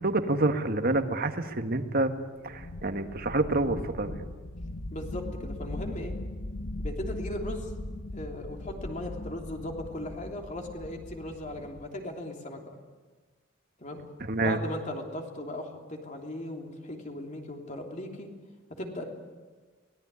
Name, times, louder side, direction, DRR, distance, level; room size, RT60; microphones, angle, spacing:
voice 1, 0.0-2.1 2.4-4.2 14.2-14.6, right 2 dB, 50° right, 7 dB, 1.6 m, -27 dB
sound 1, 2.4-11.9, left 1 dB, 70° left, 1.3 m, -39 dB
voice 2, 4.9-6.2 6.8-7.7 8.1-12.6 13.8-14.0 14.4-18.3 18.8-19.0, left 1 dB, 35° left, 2 dB, 3.1 m, -37 dB
23.5 x 18.5 x 9.5 m, 1.4 s
head